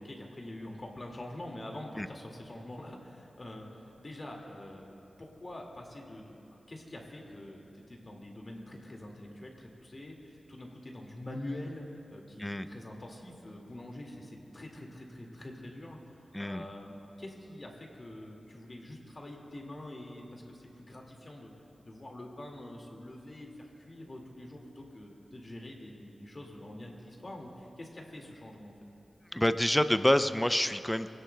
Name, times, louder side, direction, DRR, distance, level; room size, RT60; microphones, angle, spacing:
voice 1, 0.0-16.0 16.4-21.5 21.9-28.8, left 1 dB, 35° left, 0 dB, 2.1 m, -45 dB
voice 2, 29.3-31.1, left 1 dB, 10° left, 11 dB, 0.4 m, -27 dB
21.5 x 17.5 x 2.2 m, 2.8 s
wide cardioid pair, 125°, 0 cm